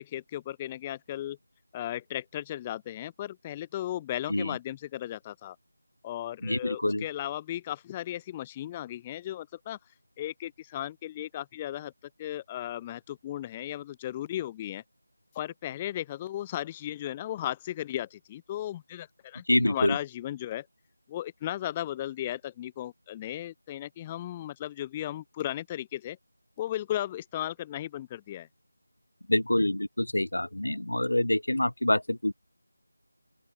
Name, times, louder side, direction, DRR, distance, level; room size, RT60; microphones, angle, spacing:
voice 1, 0.0-1.4 1.7-5.6 6.0-9.8 10.2-11.9 12.2-14.8 15.3-20.7 21.1-26.2 26.6-28.5, left 13 dB, 15° left, 1.2 m, -36 dB
voice 2, 6.4-7.0 19.5-20.0 29.3-32.3, left 1 dB, 85° left, 1.5 m, -26 dB
open air
figure-of-eight pair, 170°, 0 cm